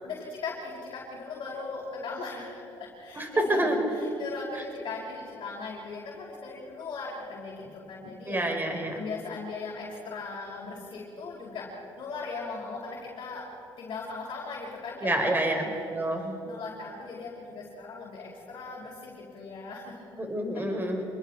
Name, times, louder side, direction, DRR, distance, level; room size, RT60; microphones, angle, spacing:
voice 1, 0.0-8.4 8.9-11.7 12.0-13.4 13.8-20.2 20.5-20.6, left 4 dB, 60° left, -5 dB, 5.3 m, -39 dB
voice 2, 3.1-3.8 8.3-9.0 15.0-15.6 15.9-16.3 20.2-21.0, right 1 dB, 20° right, 4 dB, 4.4 m, -27 dB
27.0 x 21.0 x 4.6 m, 2.8 s
supercardioid pair, 75°, 9 cm